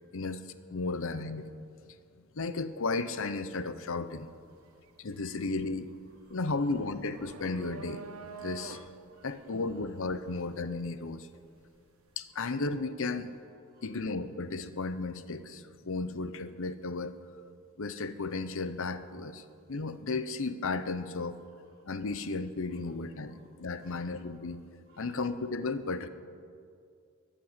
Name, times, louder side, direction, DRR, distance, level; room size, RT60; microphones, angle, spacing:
voice 1, 0.7-1.5 2.4-4.3 5.0-5.9 6.3-8.0 8.4-8.8 9.2-11.3 12.2-13.4 13.8-17.1 17.8-21.4 21.9-24.6 25.0-26.1, left 3 dB, 65° left, 12 dB, 0.7 m, -34 dB
sound 1, 4.1-4.3 4.7-11.7, right 5 dB, 70° right, 0.8 m, -48 dB
voice 2, 4.5-4.8 5.2-5.4 6.1-6.4 8.3-8.5 9.1-9.5 10.2-10.3 12.3-12.5 13.7-14.0 15.8-16.2 22.7-22.8 23.2-23.5 23.8-24.1 24.5-24.6 24.9-25.2, right 2 dB, 45° right, -8 dB, 2.9 m, -65 dB
14.0 x 9.0 x 8.3 m, 2.4 s
head